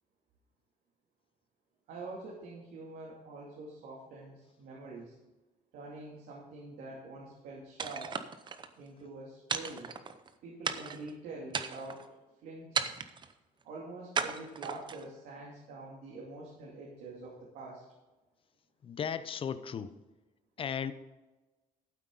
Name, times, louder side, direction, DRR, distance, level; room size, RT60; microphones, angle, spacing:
voice 1, 1.9-5.2 5.7-8.2 8.8-9.9 10.4-12.0 12.4-13.0 13.6-17.8, right 2 dB, 85° right, -4 dB, 2.7 m, -45 dB
sound 1, 7.8-8.7 9.5-10.3 10.6-11.1 11.5-12.1 12.7-13.3 14.1-15.1, right 6 dB, 30° right, 0.7 m, -35 dB
voice 2, 18.8-19.9 20.6-20.9, left 7 dB, 35° left, 12 dB, 0.7 m, -35 dB
12.0 x 9.2 x 3.9 m, 1.1 s
cardioid pair, 140°, 15 cm